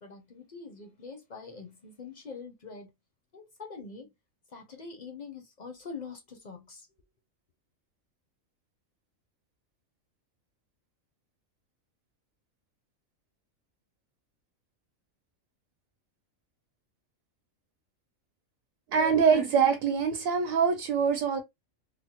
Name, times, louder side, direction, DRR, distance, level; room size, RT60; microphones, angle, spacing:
voice 1, 0.0-2.9 3.3-4.1 4.5-6.9, left 4 dB, 50° left, 0.5 m, -44 dB
voice 2, 18.9-21.4, right 6 dB, 75° right, 1.0 m, -24 dB
3.3 x 2.1 x 2.8 m
omnidirectional pair, 1.4 m